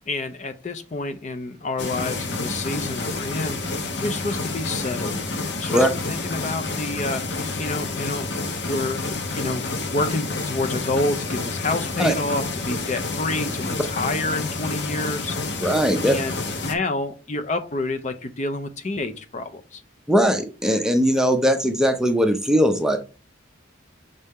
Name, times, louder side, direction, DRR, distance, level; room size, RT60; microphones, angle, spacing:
voice 1, 0.0-5.2 5.6-7.2 7.6-8.3 8.6-15.4 16.0-19.8, left 2 dB, 35° left, 9 dB, 0.6 m, -28 dB
sound 1, 1.8-16.7, left 3 dB, 60° left, 1.0 m, -29 dB
voice 2, 15.6-16.2 20.1-23.0, equal, 5° right, 6 dB, 0.6 m, -19 dB
6.6 x 4.2 x 3.6 m, 0.33 s
head